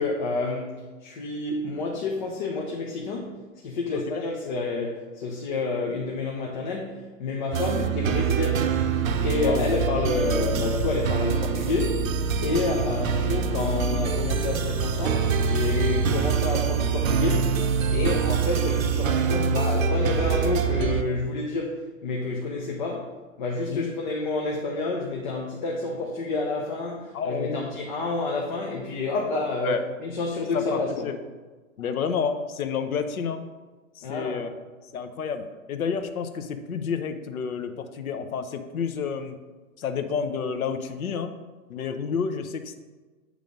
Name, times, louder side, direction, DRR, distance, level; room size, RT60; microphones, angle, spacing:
voice 1, 0.0-8.7 9.2-12.1 12.4-17.6 17.9-31.1 34.0-34.4, left 3 dB, 35° left, -1 dB, 0.8 m, -29 dB
voice 2, 3.9-4.2 9.4-9.7 12.8-12.9 23.7-23.9 27.1-27.7 29.6-29.8 30.5-31.2 31.8-33.4 33.9-34.5 34.9-39.4 39.8-41.3 41.7-42.7, left 6 dB, 80° left, 8 dB, 0.9 m, -30 dB
sound 1, 7.5-21.0, right 6 dB, 70° right, 0.8 m, -25 dB
9.1 x 3.3 x 5.2 m, 1.3 s
hypercardioid pair, 165°, 42 cm